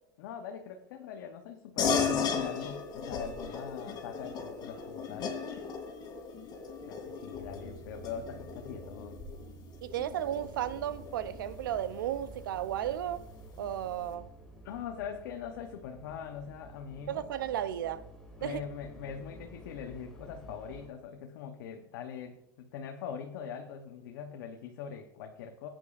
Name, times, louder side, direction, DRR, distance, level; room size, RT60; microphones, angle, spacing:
voice 1, 0.2-5.3 6.8-9.2 14.6-17.2 18.4-25.7, left 7 dB, 70° left, 0.9 m, -42 dB
sound 1, 1.8-11.6, left 6 dB, 40° left, 2.7 m, -36 dB
sound 2, 7.3-18.1, right 5 dB, 15° right, 2.9 m, -54 dB
voice 2, 9.8-13.2 13.6-14.3 17.1-18.1 18.4-18.6, right 11 dB, 85° right, 0.6 m, -34 dB
sound 3, 10.2-20.9, right 1 dB, 5° left, 2.6 m, -51 dB
14.0 x 9.0 x 2.5 m
hypercardioid pair, 105°, 11 cm